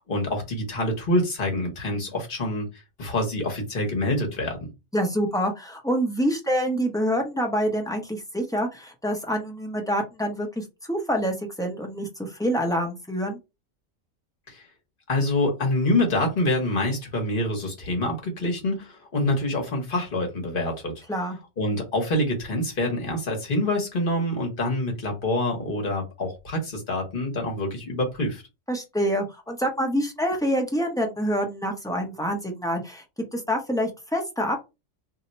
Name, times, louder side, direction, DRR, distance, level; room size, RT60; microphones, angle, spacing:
voice 1, 0.1-2.7 3.0-4.7 14.5-14.6 15.1-20.9 21.6-28.4, left 1 dB, 45° left, 1.1 m, -26 dB
voice 2, 4.9-13.4 21.1-21.4 28.7-33.0 33.3-34.6, equal, 5° left, 0.4 m, -26 dB
2.7 x 2.1 x 3.9 m
omnidirectional pair, 1.3 m